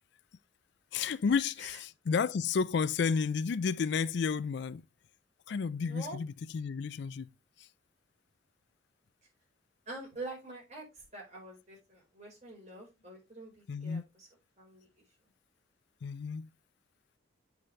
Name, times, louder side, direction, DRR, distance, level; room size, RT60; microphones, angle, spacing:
voice 1, 0.9-4.8 5.5-7.3 7.6-7.7 13.7-14.0 16.0-16.5, left 5 dB, 60° left, 0.4 m, -31 dB
voice 2, 5.8-6.2 9.9-14.3 14.6-15.0, right 2 dB, 35° right, 4.6 m, -46 dB
8.2 x 5.8 x 3.2 m
head